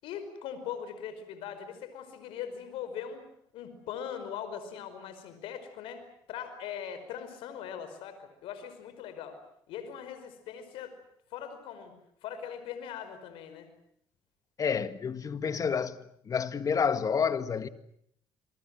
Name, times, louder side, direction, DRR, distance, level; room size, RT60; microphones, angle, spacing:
voice 1, 0.0-3.2 3.5-6.0 6.3-9.4 9.7-10.9 11.3-11.9 12.2-13.7, left 8 dB, 75° left, 5.1 m, -40 dB
voice 2, 14.6-16.0 16.3-17.7, left 6 dB, 40° left, 1.8 m, -29 dB
28.5 x 23.0 x 7.6 m
supercardioid pair, 90°, 9 cm